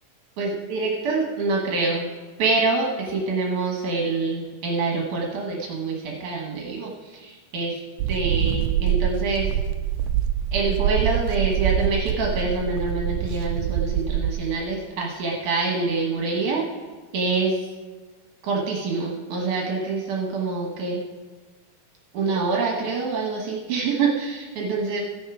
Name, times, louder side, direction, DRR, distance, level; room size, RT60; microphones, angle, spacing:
voice 1, 0.4-2.1 2.4-7.8 8.1-9.5 10.5-16.6 17.1-17.7 18.4-21.0 22.1-25.0, right 3 dB, 70° right, -1 dB, 2.5 m, -26 dB
sound 1, 8.0-14.4, right 10 dB, 85° right, 1.7 m, -25 dB
16.0 x 6.4 x 4.8 m, 1.3 s
omnidirectional pair, 3.9 m